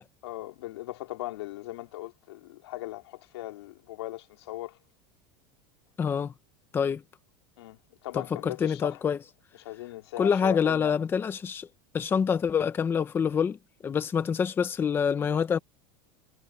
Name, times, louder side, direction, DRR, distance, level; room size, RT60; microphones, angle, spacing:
voice 1, 0.2-4.8 7.6-9.0 9.6-10.9, left 17 dB, 90° left, 3.6 m, -39 dB
voice 2, 6.0-6.3 6.7-7.0 8.4-9.2 10.2-11.7 11.9-13.6 13.8-15.6, left 7 dB, 15° left, 1.0 m, -26 dB
supercardioid pair, 160°, 13 cm